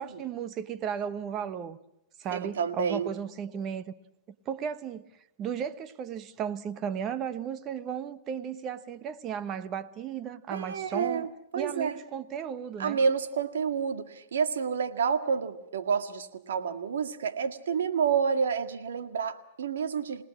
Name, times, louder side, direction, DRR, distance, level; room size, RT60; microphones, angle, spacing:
voice 1, 0.0-1.8 2.2-3.8 4.5-5.0 5.4-11.3 11.5-13.0, right 8 dB, 30° right, 1.2 m, -35 dB
voice 2, 2.3-3.1 10.5-12.0 12.8-20.2, right 6 dB, 85° right, 1.9 m, -29 dB
27.5 x 18.5 x 7.4 m
hypercardioid pair, 145°, 0 cm